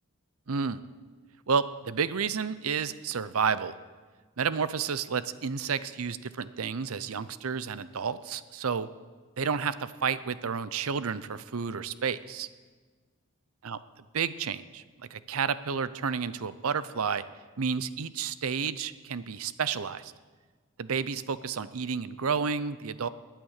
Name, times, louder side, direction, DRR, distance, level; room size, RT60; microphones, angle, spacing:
voice 1, 0.5-0.8 1.5-3.7 4.4-8.9 9.4-12.5 13.6-13.8 14.1-14.8 15.1-17.2 17.6-20.1 20.8-23.1, right 6 dB, 75° right, 15 dB, 0.6 m, -31 dB
20.0 x 9.2 x 6.6 m, 1.4 s
head